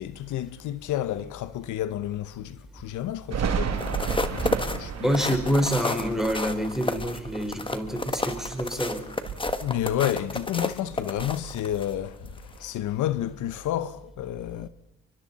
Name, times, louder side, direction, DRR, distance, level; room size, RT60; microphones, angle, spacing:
voice 1, 0.0-5.1 9.6-14.7, left 12 dB, 80° left, 1.0 m, -31 dB
Thunder, 3.3-8.8 9.1-10.6 10.8-12.6, right 7 dB, 60° right, 2.4 m, -34 dB
sound 1, 3.7-11.9 12.4-12.6, left 2 dB, 15° left, 1.5 m, -31 dB
voice 2, 5.0-9.0, equal, ahead, 4.7 m, -27 dB
29.0 x 24.0 x 4.2 m
cardioid pair, 90°, 30 cm